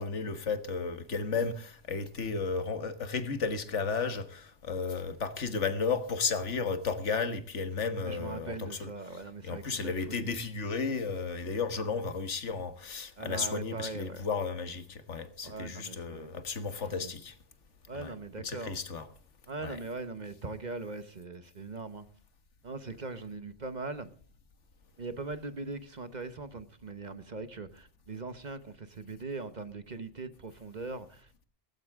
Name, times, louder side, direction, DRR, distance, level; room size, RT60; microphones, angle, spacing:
voice 1, 0.0-8.9 9.4-17.3 17.9-18.1 18.4-19.1 19.6-19.8, left 4 dB, 75° left, 1.7 m, -33 dB
voice 2, 8.0-10.4 13.2-14.2 15.4-16.4 16.7-17.1 17.9-18.8 19.5-22.1 22.6-24.1 25.0-31.4, right 3 dB, 40° right, 1.1 m, -41 dB
17.5 x 14.5 x 3.6 m
omnidirectional pair, 1.2 m